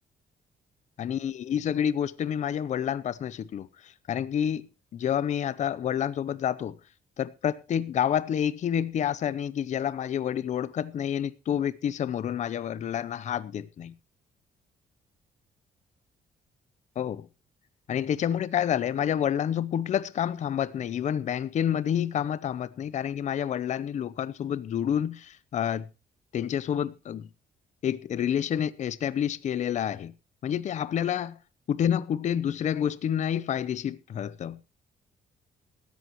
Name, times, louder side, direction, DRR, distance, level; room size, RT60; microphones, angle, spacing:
voice 1, 1.0-4.7 4.9-6.7 7.2-13.9 17.0-17.3 17.9-25.9 26.3-27.3 27.8-30.1 30.4-31.3 31.7-34.6, left 9 dB, 45° left, 0.7 m, -28 dB
17.0 x 13.5 x 3.0 m
cardioid pair, 170°, 17 cm